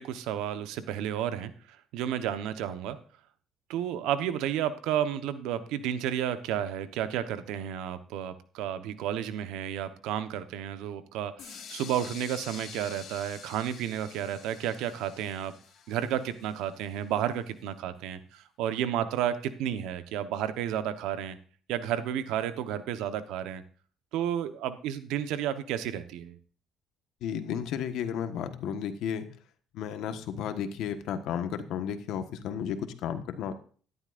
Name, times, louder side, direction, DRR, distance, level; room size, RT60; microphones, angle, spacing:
voice 1, 0.0-3.0 3.7-15.5 15.9-21.4 21.7-23.6 24.1-26.4, right 10 dB, 85° right, 11 dB, 1.1 m, -32 dB
sound 1, 11.4-17.2, left 7 dB, 60° left, 2.2 m, -47 dB
voice 2, 27.2-29.3 29.7-33.5, left 8 dB, 80° left, 9 dB, 1.4 m, -33 dB
13.5 x 11.0 x 2.6 m, 0.41 s
cardioid pair, 100°, 0 cm